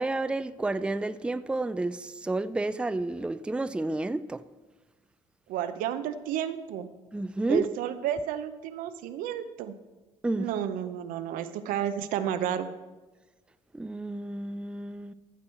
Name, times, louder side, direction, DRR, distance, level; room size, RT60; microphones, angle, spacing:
voice 1, 0.0-4.4 7.1-7.6 10.2-10.5 13.7-15.1, right 2 dB, 5° right, 0.4 m, -30 dB
voice 2, 5.5-6.9 7.5-9.7 10.4-12.7, right 10 dB, 80° right, 0.6 m, -31 dB
15.0 x 6.1 x 4.4 m
supercardioid pair, 65°, 14 cm